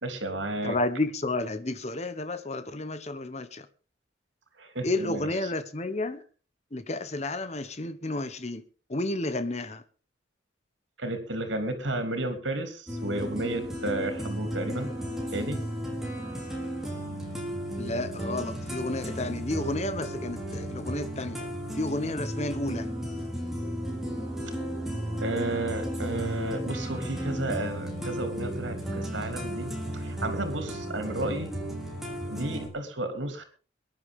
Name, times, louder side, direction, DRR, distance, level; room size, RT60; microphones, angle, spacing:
voice 1, 0.0-0.7 4.6-5.3 11.0-14.9 15.3-15.6 25.2-31.5 32.3-33.4, right 1 dB, 80° right, 3.3 m, -32 dB
voice 2, 0.6-3.7 4.8-6.2 6.7-8.6 8.9-9.8 17.8-21.5 21.8-22.9, left 2 dB, 35° left, 1.2 m, -31 dB
sound 1, 12.9-32.7, equal, ahead, 4.3 m, -34 dB
22.5 x 10.5 x 3.7 m
head